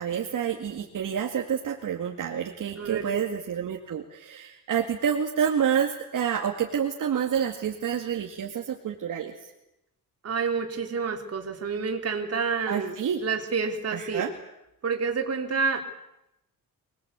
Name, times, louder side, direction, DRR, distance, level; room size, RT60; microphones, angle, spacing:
voice 1, 0.0-9.3 12.7-13.2 13.9-14.3, right 8 dB, 60° right, 2 dB, 2.3 m, -28 dB
voice 2, 2.8-3.2 10.2-14.2 14.8-15.8, right 5 dB, 45° right, 3 dB, 3.4 m, -29 dB
25.0 x 20.5 x 8.3 m, 0.87 s
wide cardioid pair, 145°, 35 cm